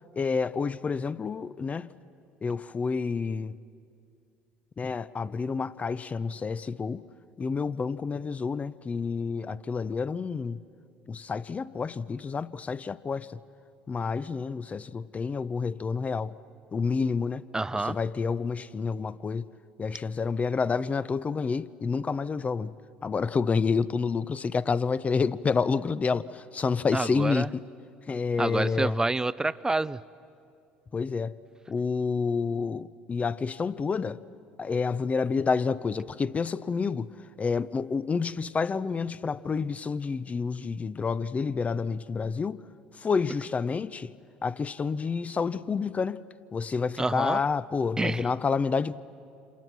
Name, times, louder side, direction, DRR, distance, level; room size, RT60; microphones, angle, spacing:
voice 1, 0.1-1.9 2.4-3.5 4.8-7.0 7.4-10.6 11.1-13.4 13.9-16.3 16.7-17.4 17.7-19.5 19.8-22.7 23.0-27.6 28.1-29.0 30.9-31.4 31.7-34.2 34.6-37.1 37.4-42.6 43.0-44.1 44.4-46.2 46.5-49.0, left 5 dB, 30° left, 0.8 m, -29 dB
voice 2, 17.5-18.0 26.9-27.5 28.4-30.0 47.0-47.4 48.0-48.3, right 2 dB, 15° right, 0.6 m, -28 dB
28.0 x 27.5 x 6.2 m
hypercardioid pair, 65°, 5 cm